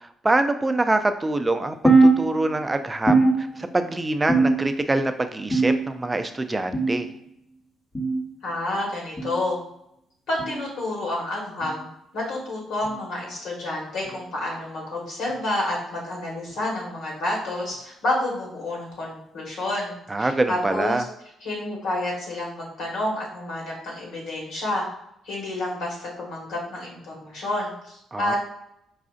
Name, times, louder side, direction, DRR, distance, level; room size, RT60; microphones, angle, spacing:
voice 1, 0.0-7.1 20.1-21.0 28.1-28.3, right 2 dB, 25° right, 9 dB, 0.4 m, -25 dB
sound 1, 1.8-2.7 3.1-3.9 4.3-4.9 5.5-6.1 6.7-7.1 7.9-8.2 9.2-9.4 10.4-10.6 11.6-11.8 12.8-13.0 14.0-14.2 15.3-15.4 16.5-16.6, right 3 dB, 30° left, 1.1 m, -21 dB
voice 2, 8.4-9.6 10.3-11.9 12.1-21.0 21.4-24.9 25.2-28.4, left 1 dB, 70° left, -4 dB, 1.4 m, -29 dB
4.8 x 2.4 x 2.4 m, 0.77 s
hypercardioid pair, 45°, 0 cm